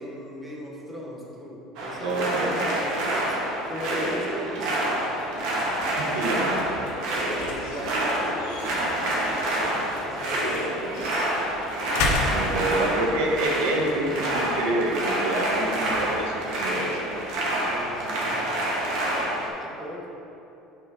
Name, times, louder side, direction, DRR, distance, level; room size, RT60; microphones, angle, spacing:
voice 1, 0.0-3.4 3.7-5.2 7.3-11.4 17.5-18.2 19.0-20.1, equal, 10° right, -3 dB, 0.8 m, -38 dB
sound 1, 1.8-19.5, right 1 dB, 65° right, 1.3 m, -27 dB
voice 2, 2.0-2.6 5.8-6.8 12.3-17.0, right 2 dB, 85° right, -1 dB, 1.0 m, -27 dB
sound 2, 5.1-17.9, left 3 dB, 75° left, 0.8 m, -36 dB
5.5 x 3.8 x 5.3 m, 2.9 s
cardioid pair, 155°, 0 cm